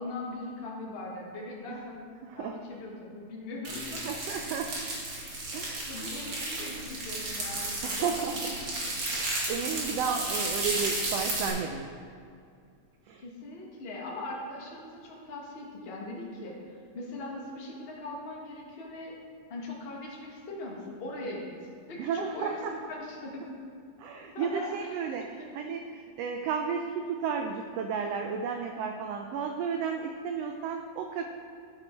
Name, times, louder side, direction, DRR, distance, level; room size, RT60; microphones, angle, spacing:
voice 1, 0.0-2.1 2.4-4.1 5.9-8.4 13.2-19.2 19.5-21.5 21.9-22.6 22.9-23.7 24.3-25.0, left 2 dB, 75° left, -3 dB, 0.5 m, -40 dB
voice 2, 2.2-2.6 4.0-4.8 5.5-5.9 7.8-8.6 9.1-11.9 13.1-13.2 22.0-22.7 24.0-31.3, right 6 dB, 85° right, 4 dB, 1.4 m, -33 dB
sound 1, 3.6-11.5, right 2 dB, 55° right, 2.8 m, -33 dB
11.0 x 6.2 x 4.4 m, 2.3 s
omnidirectional pair, 3.3 m